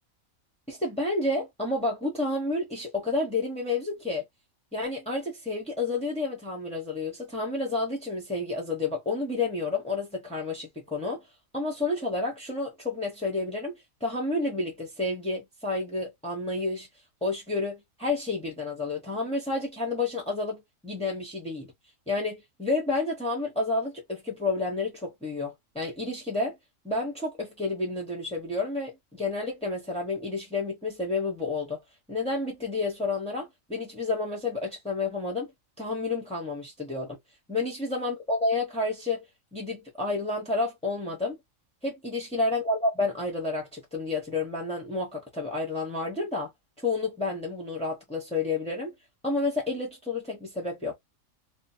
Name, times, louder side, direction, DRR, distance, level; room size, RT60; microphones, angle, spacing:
voice 1, 0.7-4.2 4.7-11.2 11.5-16.9 17.2-21.7 22.1-26.6 26.8-31.8 32.1-35.5 35.8-37.2 37.5-39.2 39.5-41.4 41.8-46.5 46.8-48.9 49.2-50.9, left 3 dB, 10° left, 0.4 m, -30 dB
2.5 x 2.1 x 2.6 m
omnidirectional pair, 1.4 m